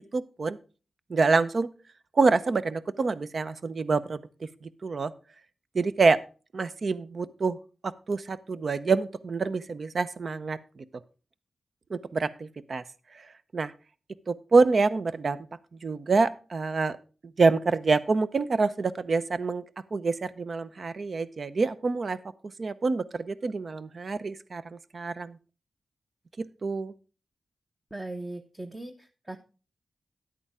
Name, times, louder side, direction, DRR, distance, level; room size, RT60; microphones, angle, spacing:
voice 1, 0.1-0.6 1.1-1.7 2.2-4.2 4.6-5.1 5.7-6.2 6.5-7.6 7.8-10.6 11.9-12.8 13.5-13.7 14.3-15.4 15.8-17.0 17.4-19.6 19.9-22.2 22.6-25.4 26.4-26.9, right 4 dB, 50° right, 14 dB, 0.7 m, -26 dB
voice 2, 27.9-29.4, right 2 dB, 15° right, 5 dB, 0.8 m, -39 dB
10.5 x 8.5 x 3.6 m, 0.34 s
wide cardioid pair, 90°, 0 cm